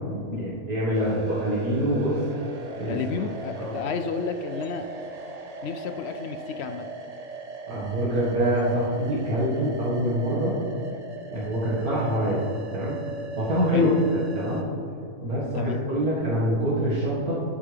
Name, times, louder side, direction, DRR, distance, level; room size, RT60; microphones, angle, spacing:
voice 1, 0.1-2.2 2.8-3.0 3.6-3.8 7.7-10.6 11.3-12.4 12.7-13.0 13.4-14.6 15.2-17.3, equal, 85° right, -9 dB, 2.4 m, -25 dB
sound 1, 0.9-14.6, right 3 dB, 35° right, 0.6 m, -39 dB
voice 2, 2.9-4.9 5.6-6.9 13.7-13.9 15.5-15.8, left 6 dB, 65° left, 8 dB, 0.6 m, -31 dB
12.0 x 8.8 x 3.4 m, 2.5 s
omnidirectional pair, 1.5 m